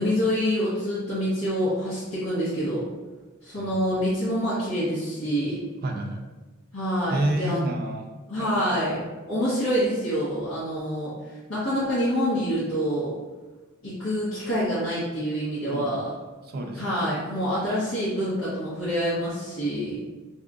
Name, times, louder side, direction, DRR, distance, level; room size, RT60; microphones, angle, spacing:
voice 1, 0.0-2.9 3.4-5.6 6.7-7.6 8.3-9.0 9.3-11.1 11.5-13.1 13.8-16.0 16.7-20.0, equal, 70° left, -12 dB, 1.1 m, -26 dB
voice 2, 5.8-6.2 7.1-8.1 8.4-8.7 15.7-16.0 16.4-17.0, right 1 dB, 45° right, 2 dB, 0.4 m, -29 dB
2.7 x 2.4 x 3.6 m, 1.2 s
head